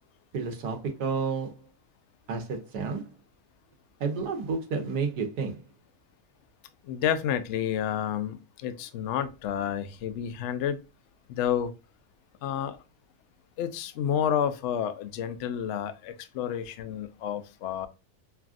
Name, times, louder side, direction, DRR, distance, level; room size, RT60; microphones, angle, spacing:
voice 1, 0.3-1.6 2.3-3.1 4.0-5.6, right 5 dB, 80° right, 1.4 m, -31 dB
voice 2, 6.9-10.8 11.3-11.7 12.4-12.8 13.6-17.9, left 9 dB, 65° left, 0.7 m, -30 dB
5.8 x 2.4 x 2.4 m
omnidirectional pair, 1.7 m